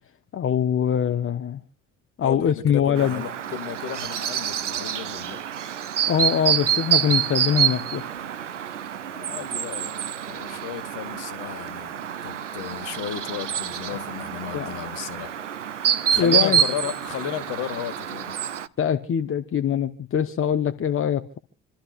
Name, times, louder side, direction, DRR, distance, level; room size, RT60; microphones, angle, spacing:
voice 1, 0.3-1.6 2.2-3.2 6.1-8.1 14.5-14.7 16.1-16.6 18.8-21.4, left 8 dB, 35° left, 1.2 m, -23 dB
voice 2, 2.2-5.4 9.1-15.4 15.8-18.4, left 11 dB, 60° left, 1.8 m, -34 dB
Chirp tweet, 3.0-18.7, right 9 dB, 85° right, 0.6 m, -27 dB
28.5 x 13.0 x 2.5 m
figure-of-eight pair, 50°, 35 cm